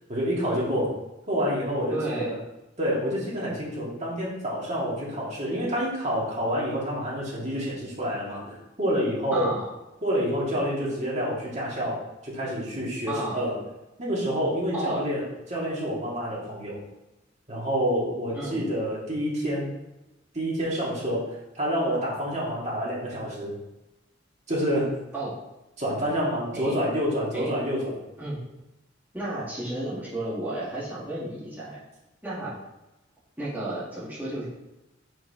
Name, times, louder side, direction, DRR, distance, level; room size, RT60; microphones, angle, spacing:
voice 1, 0.1-1.0 1.3-2.4 2.8-9.5 10.0-13.5 14.0-16.8 17.5-19.7 20.3-23.5 24.5-25.0 25.8-27.9, equal, 35° right, -5 dB, 2.3 m, -28 dB
voice 2, 1.9-2.3 9.3-9.7 13.1-13.4 14.7-15.0 18.3-18.7 25.1-25.4 26.5-26.8 27.3-27.5 28.2-28.4 29.1-31.8 32.2-32.5 33.4-34.5, right 1 dB, 10° right, -9 dB, 1.8 m, -32 dB
5.1 x 4.6 x 4.9 m, 0.95 s
head